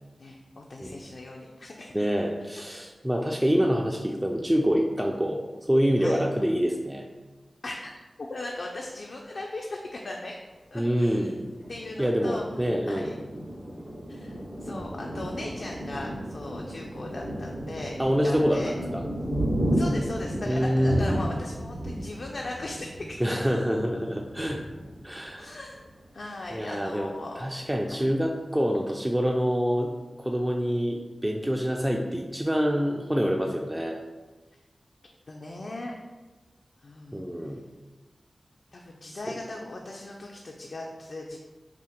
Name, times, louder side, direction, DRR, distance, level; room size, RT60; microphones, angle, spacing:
voice 1, 0.2-1.9 6.0-6.2 7.6-7.9 8.2-10.4 10.7-11.3 11.7-12.5 12.9-13.2 14.1-18.0 18.2-18.7 19.7-23.2 25.4-25.8 26.1-27.5 27.9-28.1 35.3-35.9 36.8-37.2 38.7-41.4, left 2 dB, 65° left, -1 dB, 0.4 m, -38 dB
voice 2, 1.9-7.1 10.7-11.5 12.0-13.1 18.0-19.0 20.5-21.1 23.2-24.6 25.0-25.5 26.5-29.9 30.2-34.0 37.1-37.6 39.1-39.2, equal, 15° right, 1 dB, 0.3 m, -26 dB
Thunder, 11.6-25.9 26.4-26.5 26.8-27.4, equal, 90° right, 1.4 m, -33 dB
5.8 x 2.0 x 2.8 m, 1.2 s
wide cardioid pair, 65°, 0 cm